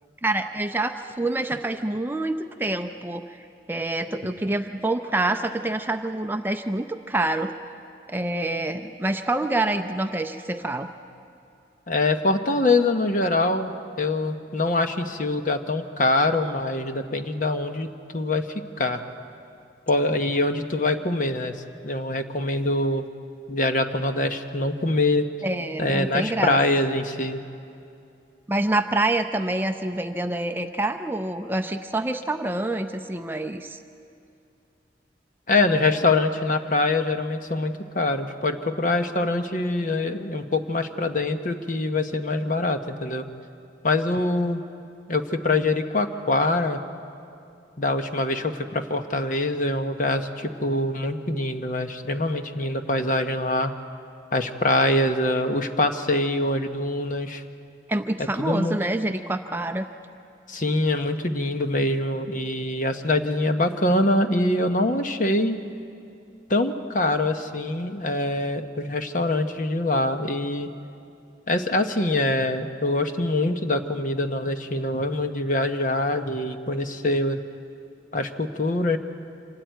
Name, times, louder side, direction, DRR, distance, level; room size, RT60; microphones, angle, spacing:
voice 1, 0.2-7.5 8.1-10.9 25.4-26.6 28.5-33.8 57.9-59.9, right 2 dB, 10° right, 7 dB, 0.5 m, -27 dB
voice 2, 11.9-13.7 14.0-17.9 18.1-18.5 18.8-19.0 19.9-21.5 21.8-23.1 23.5-25.3 25.8-27.4 35.5-43.3 43.8-44.6 45.1-46.8 47.8-53.7 54.3-57.4 58.4-58.8 60.5-65.6 66.5-70.7 71.5-77.4 78.1-79.0, left 2 dB, 45° left, 7 dB, 1.0 m, -24 dB
25.5 x 13.5 x 9.3 m, 2.6 s
head